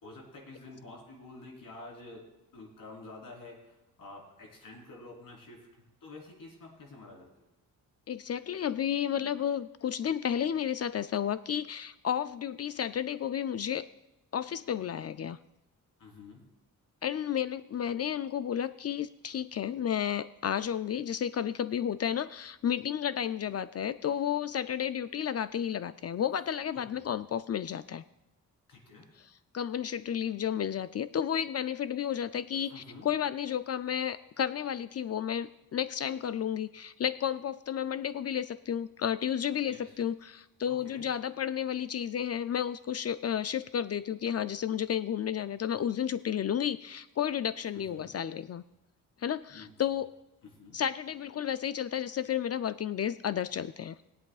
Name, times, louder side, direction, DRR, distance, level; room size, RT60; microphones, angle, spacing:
voice 1, 0.0-2.2 2.5-5.6 6.0-7.2 16.0-16.4 26.7-27.0 28.7-29.1 32.6-33.1 39.7-40.0 40.7-41.0 47.7-48.1 49.5-49.7 50.4-50.8, left 2 dB, 70° left, -1 dB, 4.0 m, -49 dB
voice 2, 8.1-13.8 14.3-15.4 17.0-28.0 29.5-48.6 49.2-50.1 50.7-54.0, left 9 dB, 45° left, 14 dB, 0.4 m, -32 dB
21.5 x 8.3 x 2.4 m, 0.93 s
cardioid pair, 75°, 34 cm